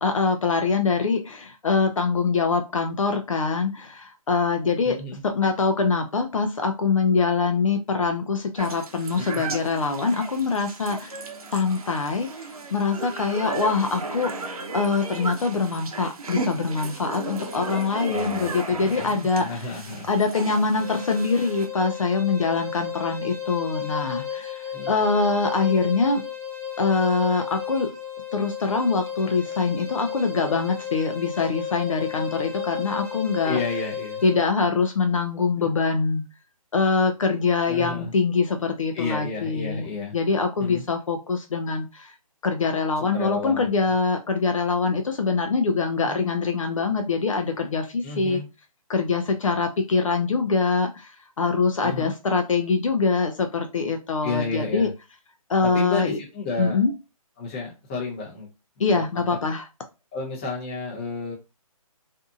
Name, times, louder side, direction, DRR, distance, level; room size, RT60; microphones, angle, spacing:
voice 1, 0.0-5.0 5.2-11.2 11.5-19.7 20.1-26.2 26.8-27.9 28.3-33.6 34.2-36.2 36.7-39.9 40.1-42.1 42.4-48.4 48.9-54.9 55.5-56.2 56.6-56.9 58.8-59.7, left 4 dB, 60° left, 5 dB, 0.5 m, -24 dB
sound 1, 8.6-21.7, right 3 dB, 75° right, 0.7 m, -35 dB
voice 2, 18.1-20.1 24.7-24.9 33.4-34.2 35.6-35.7 37.7-38.1 38.9-40.2 40.6-40.8 43.1-43.7 46.0-46.2 48.0-48.5 51.8-52.1 54.2-54.9 55.7-56.8 57.4-58.5 58.9-59.3 60.1-61.3, left 3 dB, 15° left, -5 dB, 0.8 m, -32 dB
sound 2, 20.8-34.4, left 8 dB, 25° right, 0.6 m, -34 dB
2.6 x 2.4 x 2.5 m, 0.27 s
hypercardioid pair, 170°, 19 cm